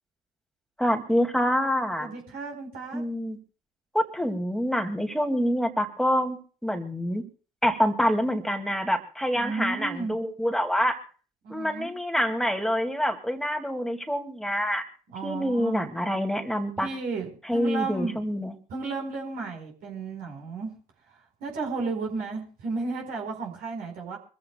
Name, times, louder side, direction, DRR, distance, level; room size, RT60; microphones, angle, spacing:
voice 1, 0.8-2.1 2.9-3.4 3.9-7.2 7.6-11.0 11.5-14.8 15.2-16.9 17.5-18.5, equal, ahead, 5 dB, 2.3 m, -26 dB
voice 2, 2.0-3.0 9.3-10.2 11.4-11.9 15.1-15.8 16.8-18.2 18.7-20.7 21.1-24.2, right 4 dB, 60° right, 0 dB, 4.3 m, -33 dB
25.0 x 15.0 x 2.3 m, 0.39 s
figure-of-eight pair, 50°, 18 cm